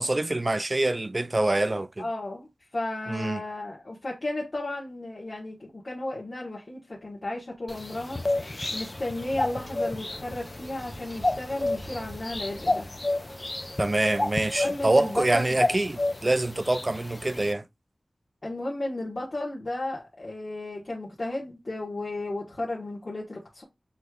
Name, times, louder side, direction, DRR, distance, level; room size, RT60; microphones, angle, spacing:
voice 1, 0.0-2.1 3.1-3.4 13.8-17.7, right 2 dB, 35° right, 0.3 m, -25 dB
voice 2, 2.0-8.2 8.7-12.9 14.6-15.6 18.4-23.6, left 2 dB, 55° left, 1.3 m, -34 dB
sound 1, 7.7-17.5, left 2 dB, 35° left, 0.4 m, -31 dB
sound 2, 8.4-15.8, equal, ahead, 1.6 m, -46 dB
6.0 x 3.2 x 2.4 m
wide cardioid pair, 65°, 0 cm